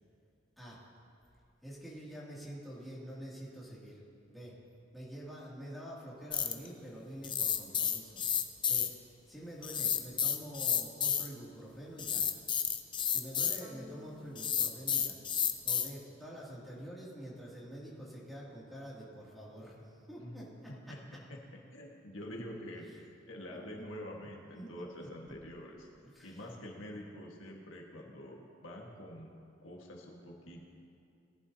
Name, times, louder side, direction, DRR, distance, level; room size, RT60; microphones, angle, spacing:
voice 1, 1.6-4.0 4.3-4.5 4.9-8.2 8.6-8.9 9.3-12.2 13.1-15.2 15.6-21.0 24.5-25.1 26.1-26.4 26.7-26.8, equal, ahead, -8 dB, 2.5 m, -47 dB
sound 1, 6.3-6.7 7.2-8.9 9.6-11.3 12.0-13.6 14.4-15.9, left 8 dB, 25° left, 0.6 m, -31 dB
sound 2, 13.6-16.2, left 1 dB, 25° right, 1.6 m, -55 dB
voice 2, 20.7-21.0 21.3-25.9 26.2-29.3 29.6-30.7, left 1 dB, 90° left, -1 dB, 1.6 m, -46 dB
18.5 x 11.0 x 2.8 m, 2.6 s
head